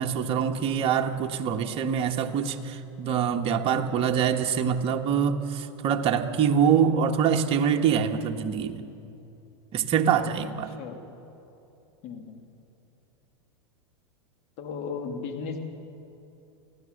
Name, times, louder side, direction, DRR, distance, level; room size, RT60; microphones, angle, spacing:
voice 1, 0.0-8.8 9.7-10.7, right 7 dB, 40° right, 4 dB, 1.5 m, -25 dB
voice 2, 10.4-11.0 12.0-12.4 14.6-15.6, left 5 dB, 50° left, 4 dB, 2.7 m, -36 dB
24.0 x 16.0 x 6.7 m, 2.8 s
hypercardioid pair, 115°, 15 cm